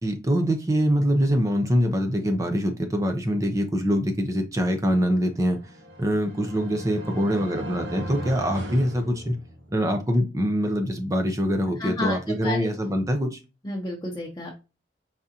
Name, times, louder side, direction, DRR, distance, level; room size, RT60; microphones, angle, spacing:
voice 1, 0.0-5.6 6.0-9.4 9.7-13.4, equal, 20° right, 0.6 m, -24 dB
sound 1, 5.5-9.9, right 1 dB, 80° right, 1.3 m, -37 dB
voice 2, 11.7-12.7 13.6-14.5, left 2 dB, 20° left, 0.8 m, -31 dB
4.9 x 3.6 x 2.8 m
head